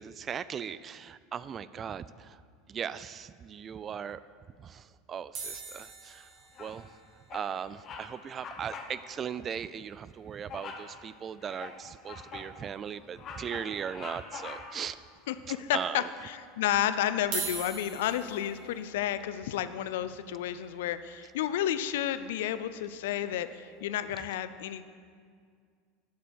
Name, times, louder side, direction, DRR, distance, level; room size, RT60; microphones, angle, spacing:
voice 1, 0.0-2.4 2.7-4.2 4.6-6.3 6.6-6.9 7.3-15.0 15.7-16.1, right 7 dB, 35° right, 16 dB, 0.3 m, -38 dB
sound 1, 5.3-9.7 10.0-10.1 10.2-10.4 10.8-10.9 12.3-12.4 13.1-13.6 14.1-14.2 15.1-15.2 17.1-23.2 23.8-24.0, right 5 dB, 60° right, 2.9 m, -44 dB
Bird vocalization bird call bird song, 6.5-6.9 7.3-7.5 7.8-8.1 8.4-9.0 9.3-9.4 10.5-10.9 11.4-12.5 13.0-14.9, left 5 dB, 40° left, 1.3 m, -44 dB
voice 2, 15.3-24.8, left 11 dB, 75° left, 13 dB, 0.5 m, -31 dB
9.5 x 7.5 x 6.3 m, 2.1 s
hypercardioid pair, 85°, 0 cm